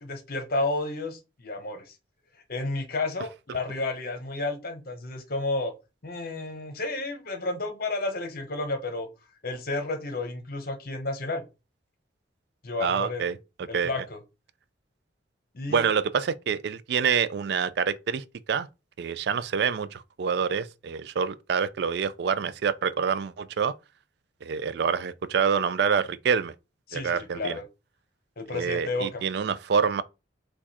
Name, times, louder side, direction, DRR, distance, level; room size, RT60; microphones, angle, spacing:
voice 1, 0.0-1.9 2.5-5.7 6.0-9.1 9.4-11.4 12.6-13.2 13.7-14.2 15.5-15.8 26.9-27.6 28.4-29.2, left 2 dB, 50° left, 0.9 m, -31 dB
voice 2, 12.8-13.4 13.7-13.9 15.7-18.7 19.0-23.7 24.4-26.5 26.9-27.6 28.5-30.0, right 6 dB, 60° right, 0.3 m, -26 dB
4.6 x 2.3 x 4.1 m
head